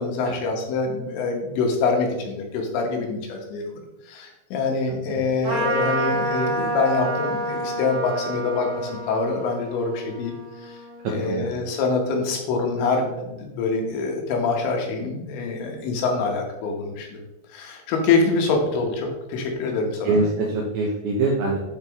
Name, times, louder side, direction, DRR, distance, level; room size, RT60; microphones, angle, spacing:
voice 1, 0.0-3.6 4.1-10.3 10.6-10.8 11.1-17.2 17.5-20.2, left 4 dB, 80° left, 1 dB, 3.3 m, -25 dB
Trumpet, 5.4-11.3, right 1 dB, 40° right, 1.5 m, -28 dB
voice 2, 11.0-11.5 20.1-21.6, right 2 dB, 80° right, -2 dB, 2.2 m, -24 dB
8.8 x 4.1 x 3.5 m, 0.94 s
omnidirectional pair, 5.1 m